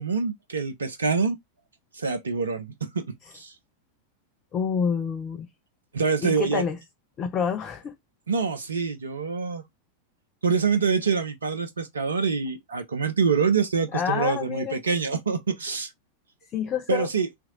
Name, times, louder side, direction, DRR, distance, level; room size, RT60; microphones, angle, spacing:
voice 1, 0.0-1.4 1.9-3.0 3.3-3.5 5.9-6.6 8.3-9.6 10.4-15.9 16.9-17.3, right 5 dB, 70° right, 0.5 m, -25 dB
voice 2, 4.5-5.5 6.2-6.8 7.2-7.9 13.9-14.8 16.5-17.1, left 7 dB, 30° left, 0.5 m, -27 dB
2.9 x 2.5 x 3.8 m
figure-of-eight pair, 90°, 0 cm